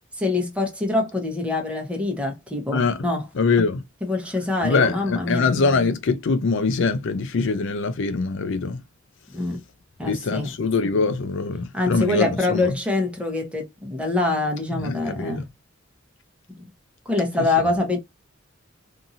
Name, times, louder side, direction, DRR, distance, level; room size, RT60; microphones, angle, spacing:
voice 1, 0.2-3.2 4.0-5.5 9.3-9.6 10.0-10.5 11.7-15.4 17.1-18.0, left 2 dB, 5° right, 0.9 m, -25 dB
voice 2, 2.7-3.1 3.3-3.8 4.6-8.8 10.0-12.7 14.8-15.4, left 4 dB, 65° left, 0.5 m, -23 dB
2.7 x 2.6 x 2.6 m
head